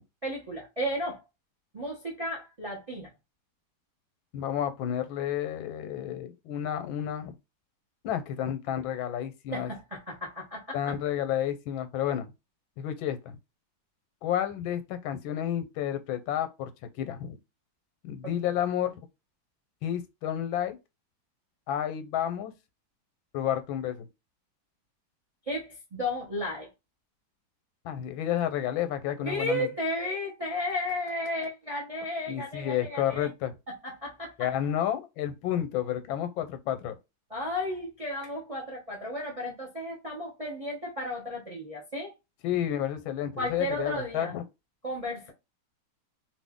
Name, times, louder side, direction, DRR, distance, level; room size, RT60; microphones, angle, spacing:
voice 1, 0.2-1.2 1.7-3.1 9.5-10.8 25.5-26.7 29.2-33.3 33.7-34.4 37.3-42.1 43.4-44.3 44.8-45.3, left 1 dB, 35° right, 0.5 m, -34 dB
voice 2, 4.3-7.3 8.0-9.7 10.7-12.3 12.8-13.2 14.2-16.7 16.9-17.4 18.0-19.0 19.8-20.8 21.7-22.5 23.3-24.1 27.8-29.7 32.3-33.6 34.4-36.9 42.4-44.4, left 10 dB, 90° left, 1.4 m, -30 dB
3.0 x 2.5 x 3.5 m
omnidirectional pair, 2.1 m